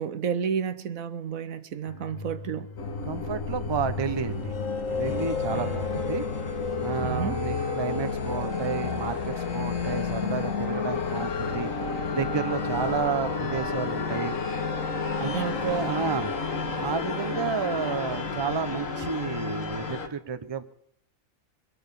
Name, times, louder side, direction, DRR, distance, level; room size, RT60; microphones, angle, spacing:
voice 1, 0.0-2.7 5.5-5.7 7.0-7.4 11.4-11.5 15.3-15.9, right 7 dB, 75° right, 1.3 m, -31 dB
sound 1, 1.9-14.2 14.5-14.7, left 6 dB, 40° left, 0.7 m, -42 dB
sound 2, 2.8-20.1, left 4 dB, 70° left, 1.9 m, -30 dB
voice 2, 3.0-4.5 4.9-6.2 6.8-11.7 12.1-14.4 15.2-15.3 15.6-16.3 16.8-20.6, right 6 dB, 25° right, 0.7 m, -31 dB
23.0 x 8.8 x 6.8 m
omnidirectional pair, 1.4 m